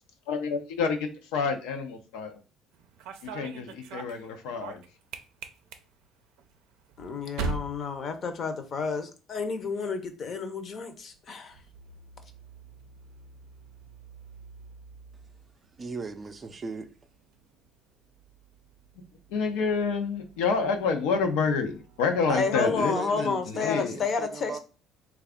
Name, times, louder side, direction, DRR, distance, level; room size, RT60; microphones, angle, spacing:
voice 1, 0.3-2.3 3.2-4.8 19.3-24.0, left 5 dB, 90° left, 0.6 m, -28 dB
sound 1, 2.7-8.9 9.2-9.7 10.8-22.5, right 5 dB, 85° right, 0.5 m, -44 dB
voice 2, 7.0-11.5 22.3-24.6, left 4 dB, 45° left, 0.7 m, -30 dB
voice 3, 15.8-16.9 22.3-24.6, right 4 dB, 30° right, 0.4 m, -38 dB
3.3 x 2.3 x 3.6 m
cardioid pair, 100°, 0 cm